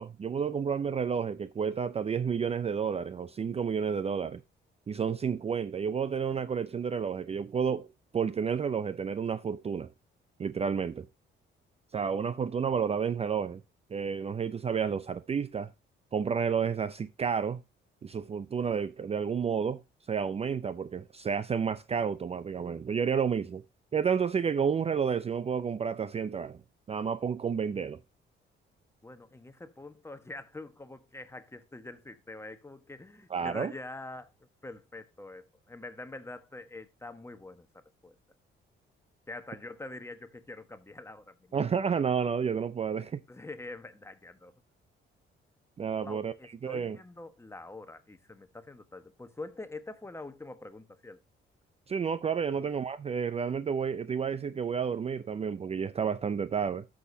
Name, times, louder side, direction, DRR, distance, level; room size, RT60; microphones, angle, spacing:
voice 1, 0.0-4.4 4.9-7.9 8.1-9.9 10.4-11.1 11.9-13.6 13.9-15.7 16.1-17.6 18.0-19.8 20.1-23.6 23.9-26.6 26.9-28.0 33.3-33.7 41.5-43.2 45.8-46.3 46.6-47.0 51.9-56.9, right 6 dB, 30° right, 0.5 m, -30 dB
voice 2, 29.0-34.3 34.6-37.7 38.0-38.1 39.3-41.6 43.3-44.5 46.0-51.2 52.5-52.7, left 2 dB, 15° left, 1.2 m, -45 dB
13.5 x 6.4 x 2.7 m
cardioid pair, 90°, 20 cm